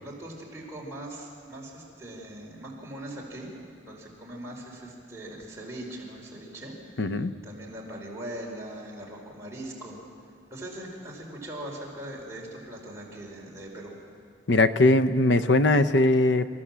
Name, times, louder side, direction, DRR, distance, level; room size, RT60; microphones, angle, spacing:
voice 1, 0.0-3.5 3.9-6.8 7.0-10.0 10.5-13.9, right 1 dB, 15° right, -3 dB, 4.5 m, -40 dB
voice 2, 7.0-7.3 14.5-16.5, left 2 dB, 70° left, 12 dB, 0.8 m, -20 dB
27.5 x 15.0 x 7.5 m, 2.3 s
head